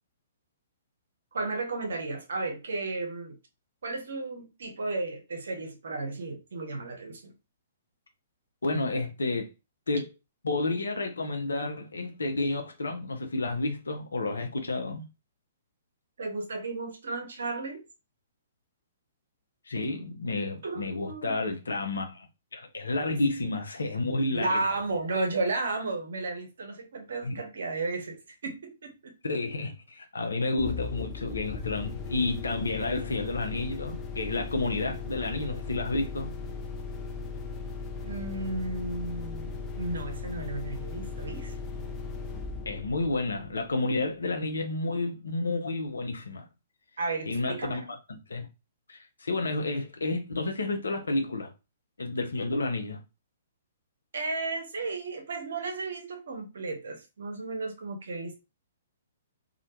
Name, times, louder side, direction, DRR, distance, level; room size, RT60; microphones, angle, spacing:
voice 1, 1.3-3.3 3.8-7.3 16.2-17.8 20.6-21.4 23.1-23.2 24.3-29.1 38.0-41.5 47.0-47.9 54.1-58.3, right 3 dB, 60° right, 0.7 m, -33 dB
voice 2, 8.6-9.5 9.9-10.1 10.4-15.0 19.7-22.3 22.5-24.6 27.2-27.4 29.2-36.3 42.7-46.5 47.3-47.8 48.1-48.5 48.9-51.5 52.0-53.0, left 2 dB, 70° left, 0.5 m, -30 dB
sound 1, 30.6-44.1, left 4 dB, 20° left, 0.5 m, -38 dB
2.4 x 2.1 x 2.8 m
figure-of-eight pair, 120°, 0 cm